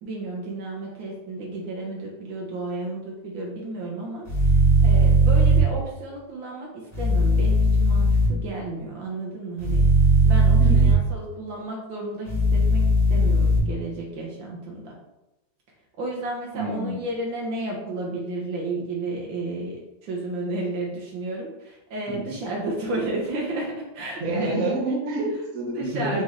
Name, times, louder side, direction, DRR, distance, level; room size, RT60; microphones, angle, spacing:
voice 1, 0.0-9.8 10.2-12.8 13.1-14.9 16.0-24.7 25.7-26.2, right 2 dB, 70° right, -2 dB, 1.4 m, -32 dB
sound 1, 4.3-5.6 6.9-8.3 9.6-10.9 12.3-13.6, right 2 dB, 10° right, 1.2 m, -18 dB
voice 2, 10.6-10.9 16.5-17.0 22.1-22.2 24.2-26.2, right 2 dB, 50° right, -3 dB, 1.3 m, -28 dB
4.1 x 3.1 x 3.7 m, 0.95 s
omnidirectional pair, 2.2 m